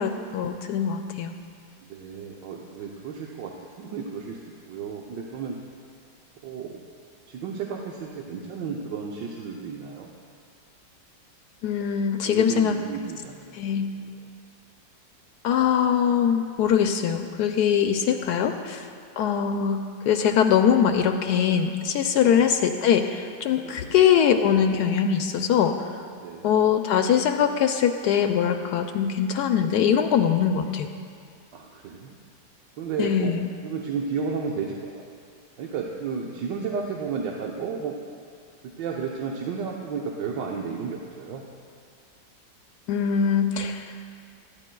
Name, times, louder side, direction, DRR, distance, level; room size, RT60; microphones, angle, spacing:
voice 1, 0.0-1.3 11.6-12.8 13.6-13.9 15.4-18.9 19.2-19.8 20.1-25.7 26.4-30.9 33.0-33.5 42.9-43.9, left 8 dB, 70° left, 6 dB, 1.0 m, -22 dB
voice 2, 1.9-5.6 6.4-6.8 7.3-10.1 12.2-13.6 13.9-14.3 22.1-22.5 23.6-24.0 26.2-26.5 31.5-32.2 32.8-35.1 35.6-38.0 38.6-41.4, right 5 dB, 75° right, -1 dB, 1.4 m, -33 dB
20.5 x 13.5 x 2.3 m, 2.3 s
omnidirectional pair, 2.0 m